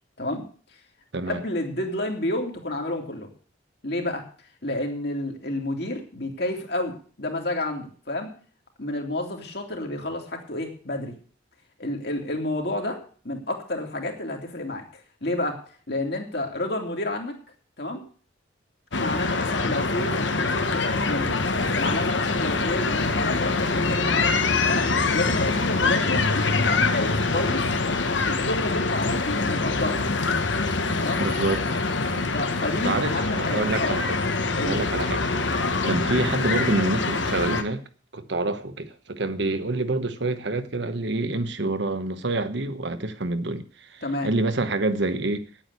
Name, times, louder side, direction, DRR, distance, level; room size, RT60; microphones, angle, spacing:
voice 1, 1.3-3.3 3.8-4.3 4.6-8.3 8.8-11.1 11.8-17.3 17.8-18.0 19.0-27.7 28.3-30.0 31.0-31.3 32.3-34.0 34.5-34.8 44.0-44.3, left 1 dB, 60° left, 2.8 m, -30 dB
sound 1, 18.9-37.6, left 3 dB, 75° left, 1.3 m, -24 dB
voice 2, 31.2-31.8 32.1-32.3 32.8-34.2 34.6-37.8 38.1-45.5, right 2 dB, 65° right, 1.1 m, -27 dB
10.0 x 8.8 x 8.2 m
head